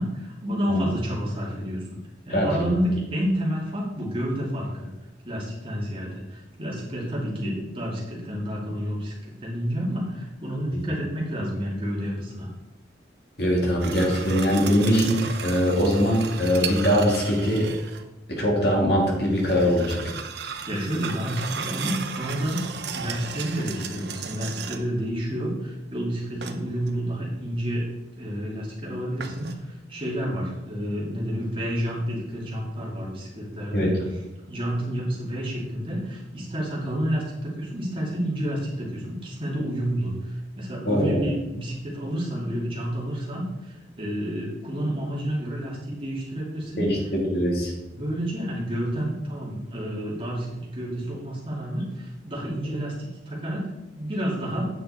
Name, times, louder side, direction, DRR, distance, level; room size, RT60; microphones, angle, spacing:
voice 1, 0.0-2.0 2.2-4.9 5.2-12.5 20.4-27.8 28.2-33.9 34.5-46.9 47.9-54.6, equal, 30° right, -5 dB, 2.5 m, -30 dB
voice 2, 2.3-2.7 10.7-10.8 13.4-17.7 18.3-20.0 33.7-33.9 40.9-41.2 46.8-47.7, equal, 60° left, -2 dB, 2.5 m, -22 dB
sound 1, 13.8-18.0 19.2-25.0 26.4-27.0 29.2-29.5, right 6 dB, 65° right, 0.7 m, -35 dB
9.0 x 6.1 x 4.3 m, 1.0 s
head